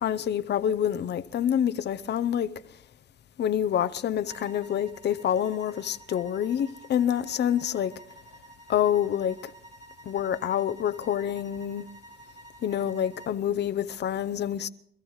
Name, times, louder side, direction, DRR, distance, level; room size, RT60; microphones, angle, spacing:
voice 1, 0.0-2.5 3.4-7.9 8.7-9.4 10.1-11.9 12.6-14.7, left 9 dB, 60° left, 0.6 m, -27 dB
sound 1, 4.3-13.4, right 2 dB, 35° right, 3.3 m, -51 dB
25.5 x 13.0 x 3.2 m
cardioid pair, 90°, 20 cm